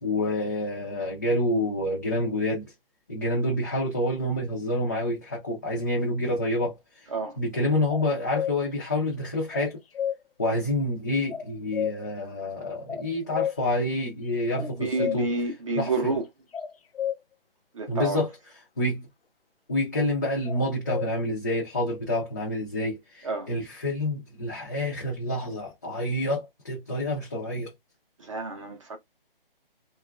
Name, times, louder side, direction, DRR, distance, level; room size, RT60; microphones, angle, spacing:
voice 1, 0.0-2.7 3.1-7.1 7.4-9.8 10.4-15.3 15.8-16.1 17.9-18.3 18.8-19.1 19.7-27.7, left 1 dB, 20° left, 0.4 m, -28 dB
sound 1, 7.9-8.6 9.5-10.2 11.3-12.1 12.9-13.6 14.5-15.2 16.5-17.2 20.5-21.1, left 9 dB, 85° left, 0.6 m, -31 dB
voice 2, 14.6-16.2 17.7-18.2 23.2-23.5 28.2-29.0, right 3 dB, 35° right, 0.6 m, -29 dB
2.9 x 2.3 x 2.2 m
figure-of-eight pair, 155°, 29 cm